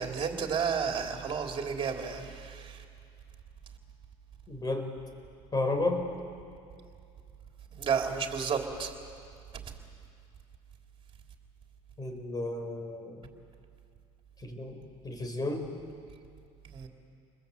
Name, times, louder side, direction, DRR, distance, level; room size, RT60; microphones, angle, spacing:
voice 1, 0.0-2.8 7.8-8.9 16.6-16.9, right 6 dB, 40° right, 2 dB, 3.5 m, -32 dB
voice 2, 4.5-4.9 5.5-6.1 12.0-13.2 14.4-14.8 15.0-15.7, left 2 dB, 30° left, 6 dB, 4.6 m, -32 dB
28.0 x 21.0 x 8.3 m, 2.4 s
supercardioid pair, 90°, 14 cm